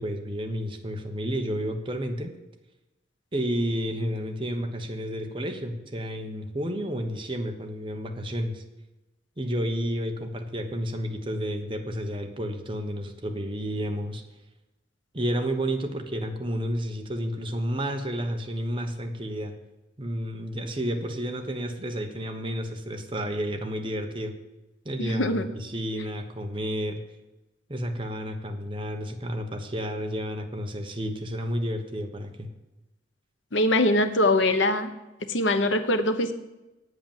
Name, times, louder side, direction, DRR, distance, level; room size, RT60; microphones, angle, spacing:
voice 1, 0.0-2.3 3.3-8.6 9.4-14.2 15.1-19.5 20.0-24.3 24.8-27.0 27.7-32.5, equal, 30° right, 5 dB, 1.1 m, -31 dB
voice 2, 25.0-25.5 33.5-34.9 35.3-36.3, left 1 dB, 90° left, 9 dB, 1.0 m, -22 dB
9.2 x 8.0 x 7.3 m, 1.0 s
head